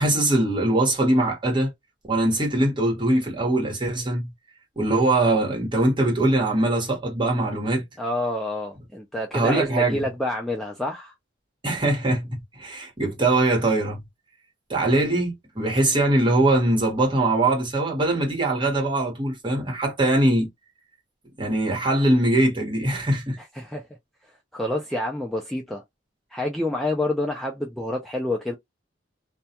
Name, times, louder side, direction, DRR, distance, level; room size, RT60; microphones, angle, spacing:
voice 1, 0.0-1.7 2.1-4.3 4.8-7.8 9.3-10.0 11.6-14.0 14.7-20.5 21.4-23.4, right 2 dB, 25° right, 1.1 m, -22 dB
voice 2, 8.0-11.1 23.4-23.9 24.3-25.8 26.3-28.5, left 1 dB, ahead, 0.4 m, -28 dB
2.3 x 2.2 x 2.7 m
head